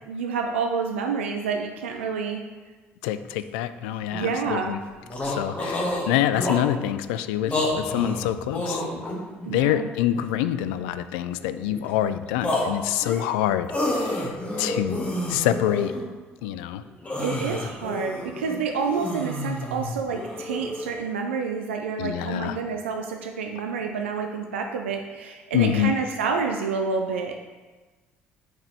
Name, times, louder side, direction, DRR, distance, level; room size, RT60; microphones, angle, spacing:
voice 1, 0.1-2.4 4.1-4.8 9.4-9.9 17.2-27.3, right 5 dB, 75° right, 3 dB, 0.4 m, -28 dB
voice 2, 3.0-4.8 5.2-9.1 9.5-15.9 16.4-16.8 22.0-22.6 25.5-25.9, left 11 dB, 65° left, 11 dB, 0.3 m, -26 dB
sound 1, 3.1-3.2 3.4-3.5 4.0-4.3 4.7-4.8 5.0-6.8 7.4-9.6 10.1-10.9 11.4-12.1 12.4-16.0 16.4-16.5 16.8-20.9, left 1 dB, 25° left, 1.7 m, -30 dB
7.9 x 4.6 x 3.4 m, 1.3 s
figure-of-eight pair, 55°, 7 cm